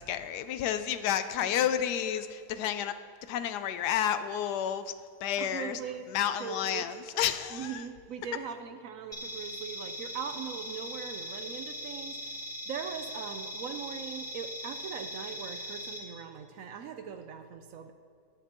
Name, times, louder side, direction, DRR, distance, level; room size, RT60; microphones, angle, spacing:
voice 1, 0.0-3.0 3.3-4.9 5.2-5.8 6.1-7.8, left 10 dB, 85° left, 11 dB, 1.1 m, -30 dB
voice 2, 5.4-6.1 6.4-6.9 7.5-17.9, right 7 dB, 70° right, 7 dB, 0.9 m, -40 dB
sound 1, 9.1-16.0, equal, 10° left, 2.1 m, -40 dB
20.0 x 6.7 x 2.9 m, 2.2 s
omnidirectional pair, 1.7 m